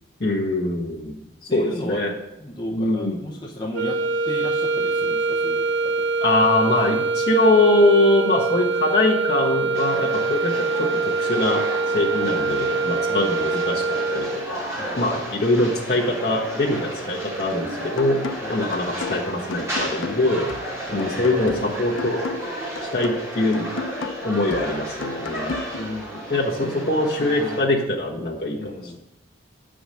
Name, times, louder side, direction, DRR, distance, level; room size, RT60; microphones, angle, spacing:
voice 1, 0.2-1.1 1.5-2.1 2.7-3.2 6.2-10.9 11.2-11.6 11.9-14.7 15.0-18.2 18.5-20.5 20.9-22.2 22.9-23.7 24.2-25.5 26.3-29.0, left 2 dB, 55° left, -4 dB, 1.4 m, -22 dB
voice 2, 1.5-2.0 2.4-6.1 12.2-12.5 13.1-13.4 14.8-15.2 18.4-18.7 20.9-21.1 25.7-26.2 26.8-26.9 27.2-27.6 28.5-29.0, left 1 dB, 25° left, -2 dB, 0.8 m, -35 dB
sound 1, 3.7-14.6, right 3 dB, 70° right, 0.7 m, -24 dB
sound 2, 9.7-27.6, right 1 dB, 15° right, 2.5 m, -33 dB
sound 3, 18.0-26.0, left 4 dB, 85° left, 0.6 m, -34 dB
8.7 x 5.1 x 6.5 m, 0.93 s
head